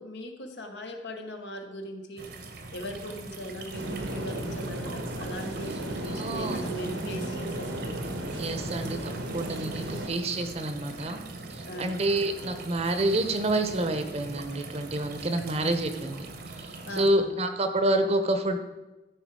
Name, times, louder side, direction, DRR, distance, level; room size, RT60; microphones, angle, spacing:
voice 1, 0.0-2.3 2.7-7.8 9.7-10.0 11.6-11.9 15.3-15.4 16.8-17.4, equal, 75° left, 4 dB, 1.2 m, -39 dB
sound 1, 2.2-17.1, right 3 dB, 60° right, 1.1 m, -42 dB
sound 2, 3.7-10.1, right 1 dB, 85° right, 1.4 m, -34 dB
voice 2, 6.0-6.6 8.4-11.2 11.5-16.3 17.0-18.6, right 1 dB, 35° right, 8 dB, 0.8 m, -28 dB
13.5 x 4.7 x 4.7 m, 1.1 s
head